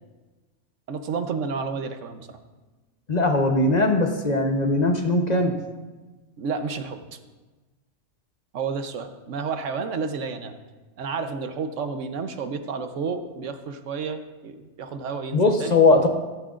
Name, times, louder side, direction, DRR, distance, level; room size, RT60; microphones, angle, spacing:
voice 1, 0.9-2.4 6.4-7.0 8.5-10.5 11.0-15.8, right 5 dB, 80° right, 8 dB, 1.2 m, -31 dB
voice 2, 3.1-5.5 15.3-16.1, left 2 dB, 40° left, 4 dB, 1.0 m, -20 dB
14.0 x 13.5 x 2.5 m, 1.2 s
omnidirectional pair, 1.3 m